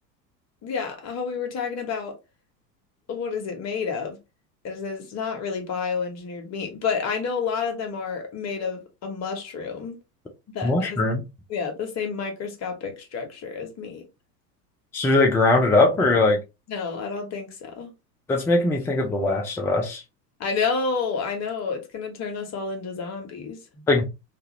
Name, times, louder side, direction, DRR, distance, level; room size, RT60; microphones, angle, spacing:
voice 1, 0.6-2.1 3.1-4.2 4.6-10.0 10.5-11.0 11.5-14.0 16.7-17.9 20.4-23.8, left 5 dB, 30° left, 1.2 m, -30 dB
voice 2, 10.6-11.2 14.9-16.4 18.3-20.0 23.9-24.0, left 2 dB, 5° left, 0.4 m, -20 dB
2.9 x 2.4 x 2.9 m
figure-of-eight pair, 80°, 50 cm